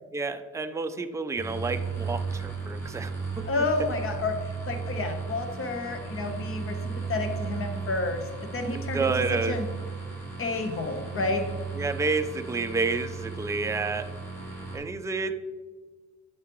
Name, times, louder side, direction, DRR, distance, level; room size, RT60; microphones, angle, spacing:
voice 1, 0.1-3.1 8.9-9.6 11.7-14.1 14.7-15.4, right 4 dB, 10° right, 7 dB, 0.4 m, -29 dB
sound 1, 1.4-14.8, right 5 dB, 10° left, 2.5 m, -35 dB
voice 2, 3.5-8.2 8.5-9.1 9.5-9.7 10.4-11.5, left 3 dB, 45° left, 5 dB, 1.1 m, -30 dB
9.4 x 6.6 x 3.1 m, 1.4 s
wide cardioid pair, 140°, 31 cm